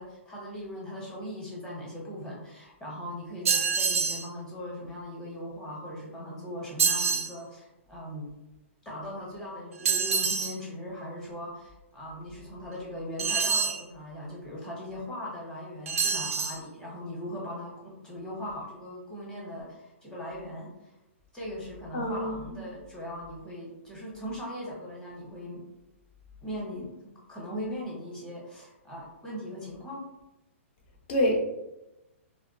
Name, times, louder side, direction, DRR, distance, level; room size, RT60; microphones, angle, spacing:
voice 1, 0.0-8.3 8.8-20.9 21.3-25.6 26.4-26.9 27.3-30.0, equal, 5° left, -5 dB, 0.9 m, -39 dB
sound 1, 3.4-4.3 6.8-7.3 9.8-10.6 13.2-13.8 15.9-16.6, right 5 dB, 85° right, 0.4 m, -26 dB
voice 2, 21.9-22.6 31.1-31.4, equal, 50° left, 0 dB, 0.7 m, -27 dB
2.5 x 2.1 x 2.7 m, 0.94 s
hypercardioid pair, 135°, 7 cm